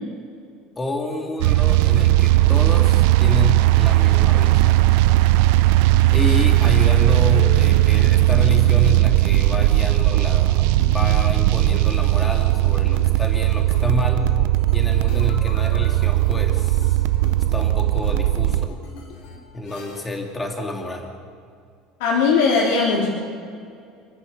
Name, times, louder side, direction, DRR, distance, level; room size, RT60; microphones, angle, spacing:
voice 1, 0.8-4.9 6.1-14.3 14.7-17.0 17.5-18.8 19.5-21.1, left 2 dB, 10° left, 2 dB, 2.4 m, -28 dB
sound 1, 1.4-18.7, right 17 dB, 70° right, 0.6 m, -17 dB
sound 2, 4.1-20.3, left 5 dB, 60° left, 4.2 m, -41 dB
voice 2, 22.0-23.1, left 4 dB, 85° left, -4 dB, 3.9 m, -18 dB
29.0 x 11.5 x 8.4 m, 2.3 s
cardioid pair, 170°, 0 cm